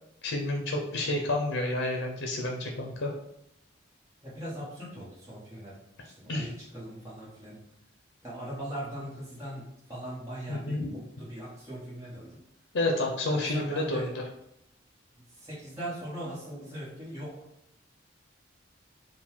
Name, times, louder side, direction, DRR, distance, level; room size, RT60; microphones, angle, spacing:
voice 1, 0.2-3.1 6.3-6.5 10.5-10.9 12.7-14.1, left 2 dB, 75° left, 1 dB, 0.6 m, -30 dB
voice 2, 4.2-5.8 6.0-7.6 8.2-12.4 13.3-14.1 15.1-17.5, right 1 dB, 15° right, -8 dB, 0.9 m, -40 dB
3.8 x 2.2 x 4.4 m, 0.77 s
head